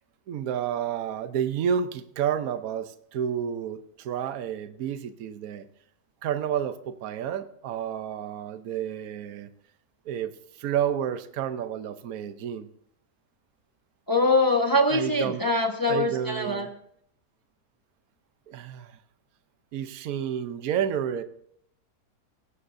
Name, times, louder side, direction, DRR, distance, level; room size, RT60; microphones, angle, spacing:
voice 1, 0.3-5.6 6.2-9.5 10.0-12.7 14.9-15.4 15.9-16.7 18.5-19.0 19.7-21.2, right 9 dB, 65° right, 11 dB, 1.2 m, -30 dB
voice 2, 14.1-16.7, left 2 dB, 15° left, 2 dB, 1.2 m, -23 dB
16.5 x 16.5 x 2.7 m, 0.68 s
omnidirectional pair, 1.7 m